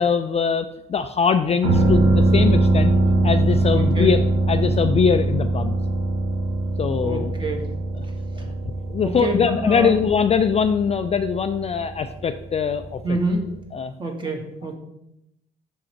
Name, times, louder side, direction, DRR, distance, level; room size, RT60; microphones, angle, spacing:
voice 1, 0.0-2.9 3.2-4.2 4.5-5.8 6.8-7.3 8.0-8.1 8.4-8.5 8.9-13.2 13.7-13.9, left 6 dB, 35° left, 8 dB, 0.3 m, -22 dB
sound 1, 1.6-13.2 13.5-13.6, right 2 dB, 75° right, 1.6 m, -22 dB
voice 2, 3.7-4.1 7.0-7.7 8.4-8.5 9.0-9.9 13.0-13.5 14.0-14.7, right 2 dB, 25° right, 1 dB, 1.6 m, -27 dB
6.1 x 3.7 x 4.5 m, 0.81 s
cardioid pair, 85°, 19 cm